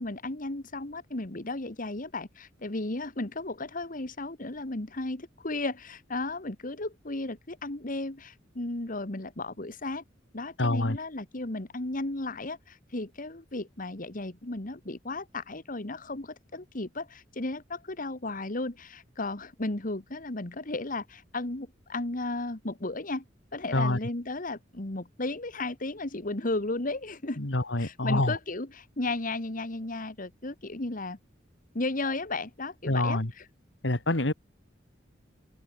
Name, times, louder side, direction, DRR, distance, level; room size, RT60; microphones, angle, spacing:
voice 1, 0.0-10.0 10.3-23.2 23.5-27.4 27.8-31.2 31.7-33.5, left 2 dB, 45° left, 1.8 m, -34 dB
voice 2, 10.6-11.0 23.7-24.0 27.4-28.4 32.9-33.3 33.8-34.3, left 2 dB, 70° left, 2.3 m, -26 dB
head